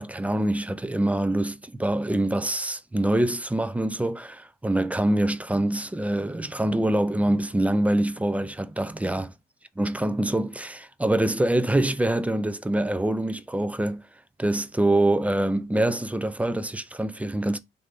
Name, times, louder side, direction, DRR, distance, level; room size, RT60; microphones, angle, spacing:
voice 1, 0.0-9.3 9.8-14.0 14.4-17.6, right 1 dB, 5° right, 0.3 m, -25 dB
3.1 x 2.7 x 3.3 m
cardioid pair, 90°, 20 cm